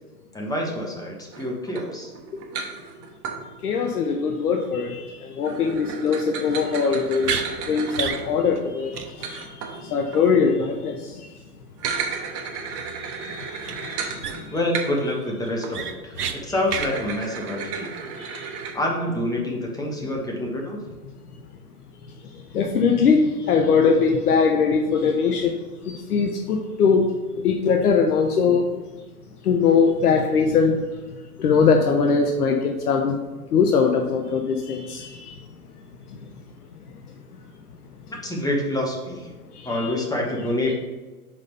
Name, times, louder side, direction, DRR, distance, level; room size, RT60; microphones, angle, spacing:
voice 1, 0.3-2.1 14.5-17.9 18.7-20.8 38.2-39.3 39.6-40.7, left 1 dB, 10° left, -1 dB, 1.2 m, -27 dB
sound 1, 1.3-3.4 5.4-10.4 11.7-15.3 15.6-15.8 16.7-18.7, right 6 dB, 30° right, 1.0 m, -34 dB
voice 2, 3.6-11.4 12.7-14.5 16.5-16.6 18.2-18.5 22.3-25.6 25.8-28.7 29.4-30.8 31.4-33.2 33.5-35.4 36.1-36.2 39.5-39.9 40.7-40.8, left 5 dB, 80° left, 4 dB, 0.7 m, -22 dB
sound 2, 7.2-7.5 7.9-8.2 8.6-8.7 8.9-9.1 9.3-9.5 13.6-13.7 14.2-14.6 15.0-15.1 15.4-16.3 16.7-16.9, right 7 dB, 85° right, 0.8 m, -28 dB
4.8 x 4.2 x 5.4 m, 1.3 s
hypercardioid pair, 105°, 45 cm